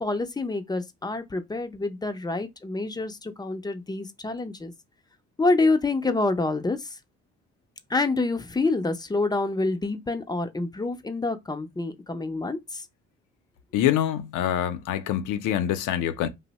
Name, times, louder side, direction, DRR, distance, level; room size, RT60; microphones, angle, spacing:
voice 1, 0.0-4.7 5.4-7.0 7.9-12.8, left 3 dB, 15° left, 0.4 m, -27 dB
voice 2, 13.7-16.3, left 11 dB, 90° left, 0.5 m, -25 dB
2.6 x 2.0 x 3.9 m
cardioid pair, 90°, 30 cm